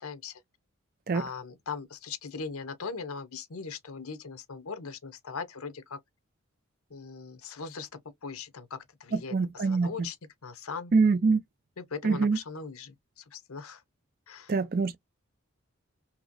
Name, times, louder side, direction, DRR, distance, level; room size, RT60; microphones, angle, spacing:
voice 1, 0.0-0.4 1.1-6.0 6.9-10.2 10.4-10.9 11.8-13.8 14.3-14.5, left 5 dB, 85° left, 0.7 m, -40 dB
voice 2, 9.1-9.9 10.9-11.4 12.0-12.4 14.5-15.0, right 4 dB, 45° right, 0.4 m, -24 dB
2.9 x 2.8 x 2.5 m
head